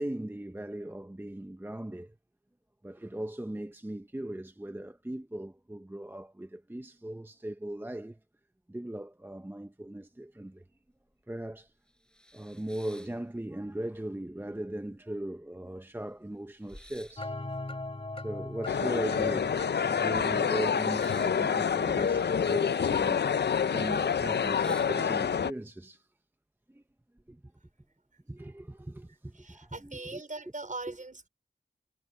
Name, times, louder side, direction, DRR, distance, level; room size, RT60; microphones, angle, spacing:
voice 1, 0.0-2.1 2.8-8.2 8.7-10.6 11.3-11.7 12.3-17.4 18.2-19.6 19.9-26.1 26.7-26.8 27.3-27.4 28.3-30.2 30.9-31.0, right 1 dB, 10° right, 0.8 m, -39 dB
sound 1, 11.1-11.2 11.7-13.9 14.2-14.9 15.3-15.4 15.5-19.7 20.0-22.8 23.0-23.6 24.0-24.1 24.4-25.4, equal, 5° left, 5.8 m, -55 dB
sound 2, 17.2-23.2, left 2 dB, 30° left, 3.5 m, -41 dB
sound 3, 18.7-25.5, left 7 dB, 70° left, 0.5 m, -27 dB
voice 2, 29.3-31.3, right 2 dB, 45° right, 4.9 m, -41 dB
wide cardioid pair, 60°, 18 cm